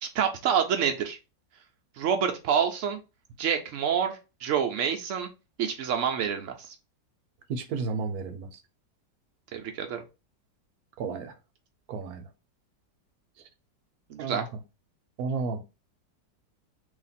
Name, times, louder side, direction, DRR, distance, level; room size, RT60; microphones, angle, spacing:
voice 1, 0.0-1.2 2.0-3.0 3.4-5.3 5.6-6.7 9.5-10.0 14.1-14.4, right 7 dB, 90° right, 0.6 m, -27 dB
voice 2, 7.5-8.6 11.0-11.3 11.9-12.3 14.2-14.6 15.2-15.6, right 4 dB, 70° right, 0.9 m, -32 dB
3.2 x 2.9 x 4.0 m
omnidirectional pair, 2.0 m